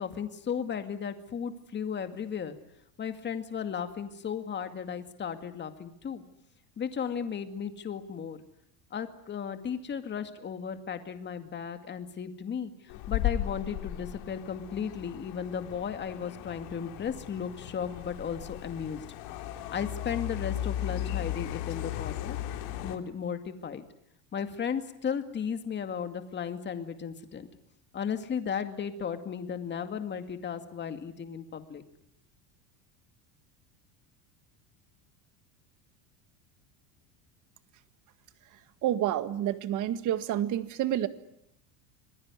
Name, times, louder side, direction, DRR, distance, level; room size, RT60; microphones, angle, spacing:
voice 1, 0.0-2.6 3.0-6.2 6.8-8.4 8.9-19.0 19.7-22.4 22.8-23.8 24.3-27.5 27.9-31.8, left 7 dB, 25° left, 8 dB, 2.2 m, -35 dB
sound 1, 12.9-23.0, left 12 dB, 60° left, 3.4 m, -36 dB
voice 2, 38.8-41.1, right 12 dB, 40° right, 12 dB, 1.8 m, -29 dB
26.5 x 20.5 x 9.8 m, 0.75 s
cardioid pair, 155°, 46 cm